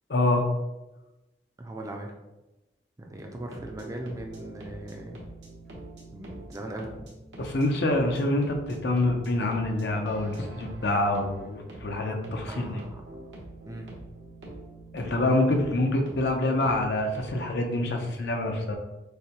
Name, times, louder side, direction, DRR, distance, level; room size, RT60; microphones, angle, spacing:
voice 1, 0.1-0.5 7.4-12.8 14.9-18.8, left 2 dB, 65° left, 3 dB, 0.6 m, -26 dB
voice 2, 1.6-2.1 3.0-5.2 6.1-7.1 12.5-13.0 13.7-13.9, right 1 dB, 20° right, 2 dB, 0.4 m, -39 dB
sound 1, 3.3-17.5, right 1 dB, 90° right, 1.1 m, -45 dB
6.5 x 2.2 x 2.9 m, 1.0 s
head